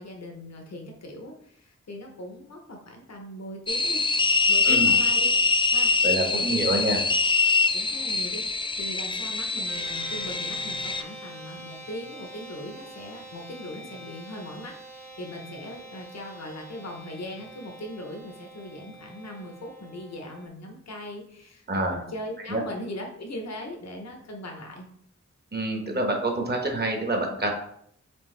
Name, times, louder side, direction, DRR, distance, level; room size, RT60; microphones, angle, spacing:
voice 1, 0.0-4.0 4.5-5.3 5.7-5.9 6.3-6.7 7.7-24.9, left 1 dB, 60° left, 1 dB, 0.8 m, -39 dB
sound 1, 3.7-11.0, left 4 dB, 20° left, 0.3 m, -24 dB
voice 2, 6.0-7.0 21.7-22.0 22.5-22.6 25.5-27.5, right 2 dB, 35° right, 2 dB, 1.0 m, -26 dB
sound 2, 9.6-20.5, right 1 dB, 70° right, 1.1 m, -45 dB
4.5 x 3.4 x 3.2 m, 0.69 s
wide cardioid pair, 75°, 30 cm